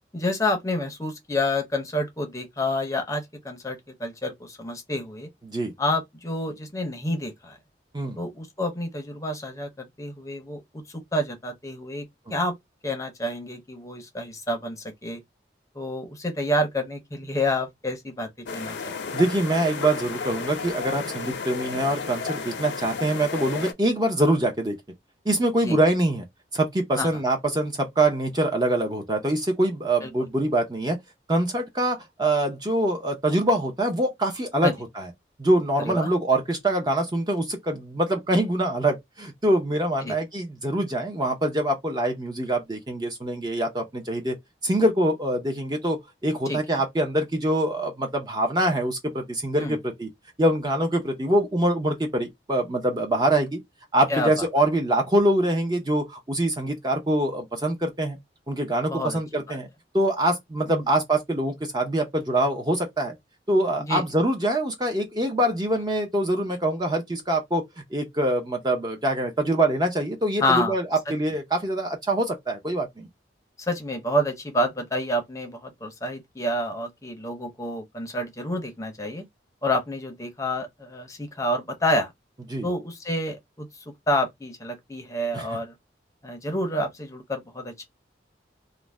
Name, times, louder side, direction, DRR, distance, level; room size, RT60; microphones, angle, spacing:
voice 1, 0.1-5.3 5.8-7.6 8.2-12.5 12.8-15.2 15.8-19.2 25.6-25.8 27.0-27.1 30.0-30.1 34.6-34.7 35.8-36.1 40.0-40.2 46.5-46.8 49.6-49.8 54.1-54.5 58.9-59.2 59.5-59.6 60.7-60.8 63.9-64.0 70.4-70.7 73.6-79.2 79.6-82.1 82.6-83.7 84.1-85.7 86.2-87.8, left 1 dB, 20° left, 0.6 m, -28 dB
sound 1, 18.5-23.7, left 5 dB, 80° left, 0.5 m, -33 dB
voice 2, 19.1-24.8 25.3-26.2 26.5-31.0 31.3-35.1 35.4-44.4 44.6-50.1 50.4-53.6 53.9-58.2 58.5-59.7 59.9-63.1 63.5-67.6 67.9-73.1 82.5-82.7 85.3-85.5, right 1 dB, 25° right, 0.5 m, -24 dB
2.5 x 2.0 x 3.2 m
head